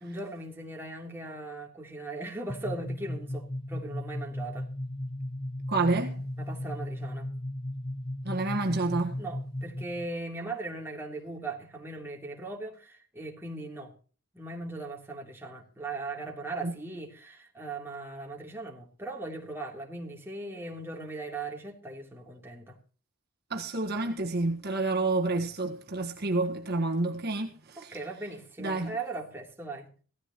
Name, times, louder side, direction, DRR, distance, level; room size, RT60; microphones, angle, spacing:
voice 1, 0.0-4.7 6.4-7.3 9.2-13.9 14.3-22.8 27.8-29.9, right 2 dB, 10° right, 3.1 m, -39 dB
sound 1, 2.5-10.1, left 1 dB, 20° left, 0.6 m, -36 dB
voice 2, 5.7-6.2 8.2-9.2 16.6-16.7 23.5-28.0 28.6-28.9, right 2 dB, 45° right, 1.5 m, -29 dB
17.0 x 14.0 x 3.0 m
head